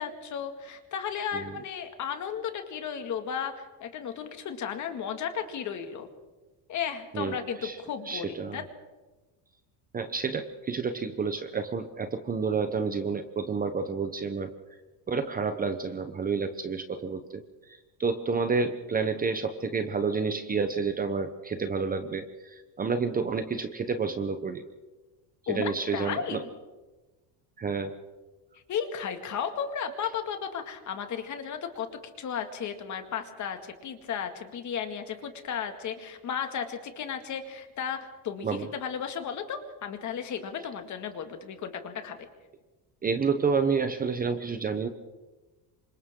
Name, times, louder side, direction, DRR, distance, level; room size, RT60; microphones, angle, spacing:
voice 1, 0.0-6.1 6.7-8.6 25.5-26.5 28.7-31.9 32.2-42.3, left 7 dB, 40° left, 6 dB, 2.2 m, -34 dB
voice 2, 8.1-8.6 9.9-14.5 15.1-17.4 18.0-24.6 25.5-26.4 27.6-27.9 38.4-38.7 43.0-44.9, right 5 dB, 20° right, 8 dB, 0.9 m, -29 dB
28.0 x 25.5 x 3.8 m, 1.2 s
cardioid pair, 160°, 45 cm